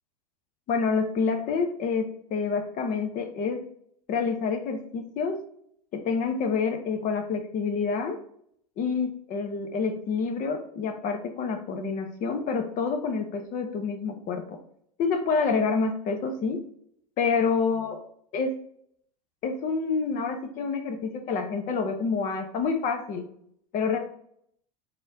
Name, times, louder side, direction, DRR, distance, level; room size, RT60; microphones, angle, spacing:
voice 1, 0.7-3.6 4.1-5.4 5.9-8.2 8.8-14.6 15.0-16.6 17.2-18.0 18.3-18.5 19.4-23.2 23.7-24.0, left 5 dB, 40° left, 5 dB, 1.0 m, -28 dB
4.2 x 3.7 x 2.7 m, 0.67 s
hypercardioid pair, 85°, 20 cm